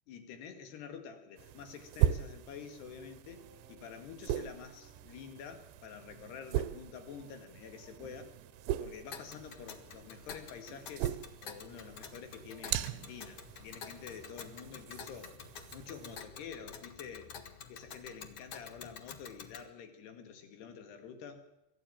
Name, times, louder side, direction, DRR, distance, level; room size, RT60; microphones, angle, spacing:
voice 1, 0.1-8.4 8.8-15.4 15.7-17.3 17.7-21.5, left 7 dB, 65° left, 7 dB, 4.0 m, -48 dB
sound 1, 1.4-16.2, right 12 dB, 80° right, 3.1 m, -39 dB
sound 2, 3.3-6.0 6.3-16.9, equal, ahead, 5.5 m, -66 dB
Tick, 9.1-19.7, left 6 dB, 90° left, 1.3 m, -49 dB
23.5 x 14.5 x 8.8 m, 0.93 s
omnidirectional pair, 5.4 m